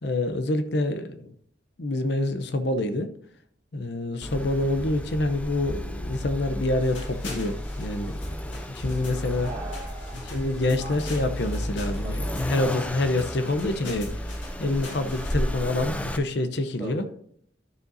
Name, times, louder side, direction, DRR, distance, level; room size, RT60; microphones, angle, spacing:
voice 1, 0.0-1.3 1.8-3.1 3.7-9.5 10.3-17.1, left 2 dB, 60° left, 10 dB, 0.7 m, -27 dB
Accelerating revving vroom, 4.2-16.2, equal, 5° left, 0.5 m, -33 dB
sound 1, 6.8-15.4, left 2 dB, 80° left, 2.2 m, -44 dB
voice 2, 9.4-10.4 10.8-11.1 12.0-12.4 16.8-17.1, right 2 dB, 20° right, -9 dB, 2.4 m, -40 dB
12.0 x 6.7 x 2.7 m, 0.62 s
head